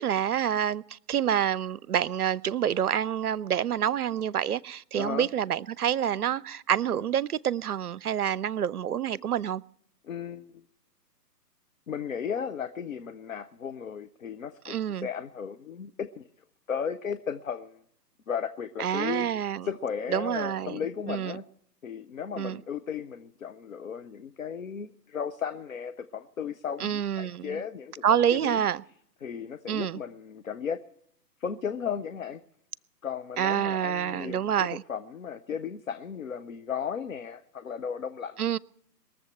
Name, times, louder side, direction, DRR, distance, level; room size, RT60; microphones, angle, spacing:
voice 1, 0.0-9.6 14.7-15.1 18.8-19.7 20.1-20.8 21.1-21.4 22.4-22.6 26.8-27.6 28.0-28.8 29.7-30.0 33.4-34.8 38.4-38.6, right 9 dB, 65° right, 0.6 m, -27 dB
voice 2, 5.0-5.3 10.0-10.6 11.9-14.8 15.0-16.3 16.7-17.8 18.3-21.5 21.8-27.9 28.3-28.6 29.2-30.8 31.4-32.4 33.0-38.6, left 7 dB, 55° left, 0.7 m, -35 dB
22.0 x 7.3 x 7.9 m
figure-of-eight pair, 135°, 50 cm